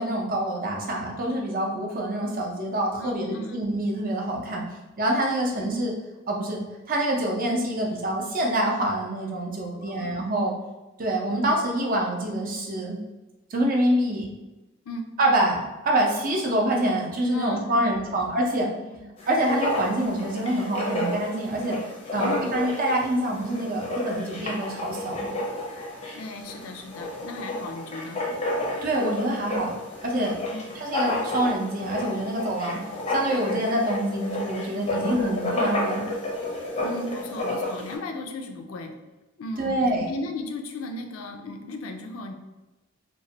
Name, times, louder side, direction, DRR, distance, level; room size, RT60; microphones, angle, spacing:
voice 1, 0.0-4.6 5.0-5.9 6.3-6.6 6.9-10.5 11.0-13.0 13.5-14.3 15.2-18.7 19.3-21.8 22.1-25.3 28.8-29.7 30.0-30.4 30.7-32.8 33.1-36.1 39.6-40.1, right 1 dB, 45° right, -1 dB, 0.5 m, -26 dB
voice 2, 3.0-3.6 5.5-5.8 9.8-10.2 14.9-15.1 17.3-18.2 18.8-19.0 22.1-22.6 26.1-28.2 29.2-29.4 30.5-30.7 35.0-35.2 36.8-38.9 39.4-39.8 40.1-42.3, left 2 dB, 85° left, 5 dB, 0.4 m, -36 dB
Writing, 19.2-38.0, left 1 dB, 30° left, 0.5 m, -31 dB
3.0 x 2.1 x 2.7 m, 1.1 s
head